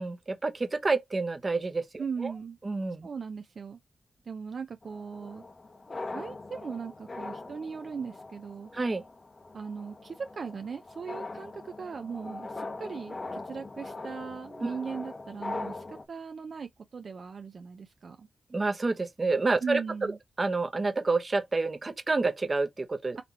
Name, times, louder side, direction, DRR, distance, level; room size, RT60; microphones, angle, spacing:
voice 1, 0.0-2.3 2.6-3.1 8.7-9.0 14.6-14.7 18.5-19.8 20.4-23.2, right 3 dB, 40° right, 0.9 m, -28 dB
voice 2, 2.0-2.6 3.0-3.8 4.3-5.4 6.1-8.7 9.5-18.3 19.6-20.2 23.2-23.3, right 6 dB, 65° right, 0.5 m, -38 dB
sound 1, 4.8-16.0, left 3 dB, 40° left, 0.9 m, -41 dB
4.2 x 3.0 x 4.1 m
cardioid pair, 55°, 0 cm